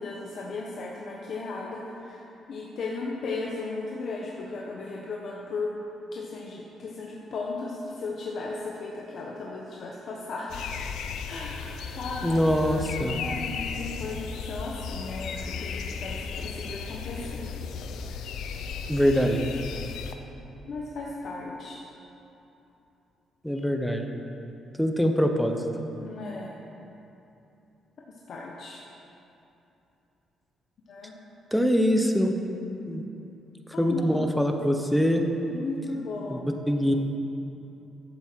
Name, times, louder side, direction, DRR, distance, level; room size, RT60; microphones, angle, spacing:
voice 1, 0.0-5.7 6.1-10.7 11.2-17.5 20.7-21.8 26.0-26.6 28.1-28.8 30.9-31.2 33.7-34.2 35.5-36.5, left 3 dB, 60° left, -3 dB, 1.1 m, -36 dB
sound 1, 10.5-20.1, left 6 dB, 80° left, 0.6 m, -35 dB
voice 2, 12.2-13.2 18.9-19.5 23.4-24.1 24.8-25.6 31.5-32.3 32.9-33.0 33.8-35.2 36.3-36.4 36.7-37.0, equal, ahead, 4 dB, 0.9 m, -23 dB
12.0 x 7.4 x 4.6 m, 2.9 s
cardioid pair, 90°, 0 cm